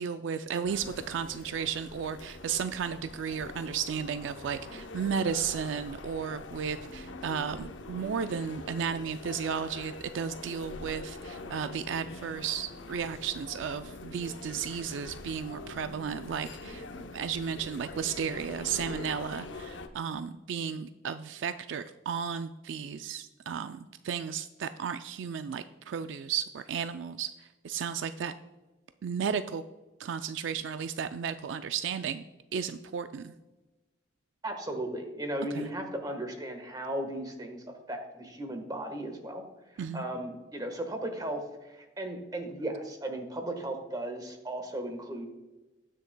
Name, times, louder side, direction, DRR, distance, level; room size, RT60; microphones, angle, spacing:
voice 1, 0.0-16.8 17.1-27.3 27.6-28.3 29.0-29.6 30.0-32.2 32.5-33.3 35.5-35.7 39.8-40.0, right 7 dB, 70° right, 10 dB, 0.4 m, -34 dB
sound 1, 0.7-19.9, left 3 dB, 70° left, 0.7 m, -44 dB
voice 2, 34.4-39.4 39.7-45.3, right 1 dB, 20° right, 5 dB, 1.3 m, -36 dB
19.0 x 6.5 x 2.2 m, 1.1 s
head